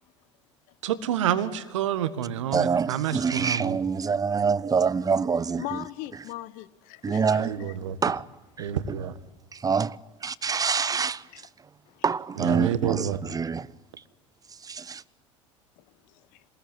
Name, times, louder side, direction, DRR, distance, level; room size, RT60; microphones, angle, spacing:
voice 1, 0.8-3.8 7.4-8.0 8.6-9.2 12.4-13.2, right 10 dB, 75° right, 1.8 m, -28 dB
voice 2, 2.5-5.8 7.0-7.7 8.0-8.3 8.6-9.0 9.5-11.3 12.0-13.7 14.5-15.0, right 5 dB, 20° right, 1.0 m, -26 dB
voice 3, 5.6-7.2 11.3-11.4 11.9-12.0 15.8-16.4, left 17 dB, 60° left, 1.4 m, -39 dB
27.5 x 20.5 x 9.8 m
hypercardioid pair, 70°, 16 cm